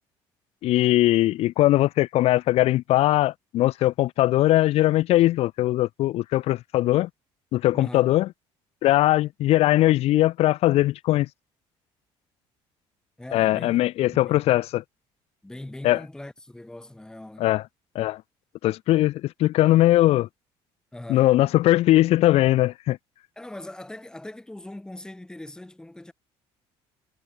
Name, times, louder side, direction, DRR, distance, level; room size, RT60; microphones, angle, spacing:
voice 1, 0.6-7.1 7.5-8.3 8.8-11.3 13.3-14.8 15.8-16.0 17.4-17.6 17.9-18.2 18.6-20.3 21.1-23.0, left 15 dB, 65° left, 1.2 m, -20 dB
voice 2, 7.7-8.1 13.2-14.4 15.4-17.5 20.9-21.3 23.4-26.1, left 1 dB, 5° left, 5.4 m, -41 dB
cardioid pair, 135°, 11 cm